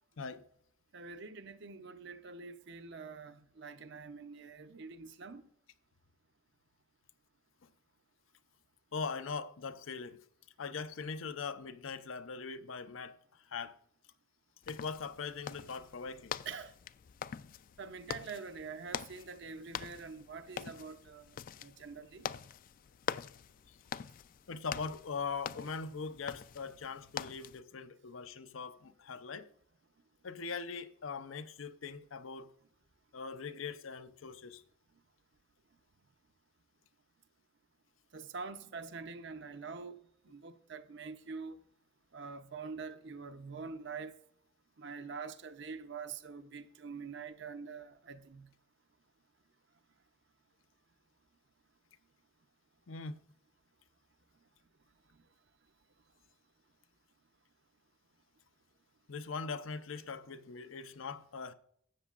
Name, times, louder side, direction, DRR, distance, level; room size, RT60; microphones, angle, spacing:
voice 1, 0.9-5.4 16.5-16.7 17.8-21.4 21.6-22.2 38.1-40.0 40.3-41.6 42.1-44.1 44.8-48.5, right 5 dB, 60° right, 0.7 m, -45 dB
voice 2, 8.9-10.2 10.6-13.7 14.7-16.4 23.7-23.8 24.5-29.5 30.2-32.5 33.1-34.6 52.9-53.2 59.1-61.5, left 5 dB, 90° left, 0.7 m, -41 dB
sound 1, 14.6-27.6, left 8 dB, 45° left, 0.3 m, -45 dB
12.5 x 8.2 x 2.5 m
head